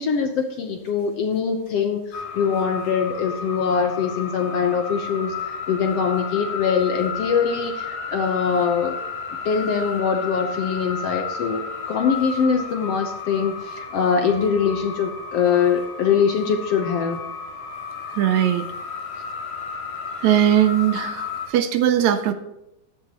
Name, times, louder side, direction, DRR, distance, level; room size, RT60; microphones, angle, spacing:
voice 1, 0.0-9.0 9.4-17.2, left 6 dB, 70° left, 5 dB, 1.6 m, -23 dB
sound 1, 2.1-21.5, left 5 dB, 90° left, 3.8 m, -33 dB
voice 2, 18.1-18.7 20.2-22.3, right 11 dB, 75° right, 10 dB, 1.9 m, -19 dB
14.5 x 10.5 x 2.9 m, 0.90 s
omnidirectional pair, 3.6 m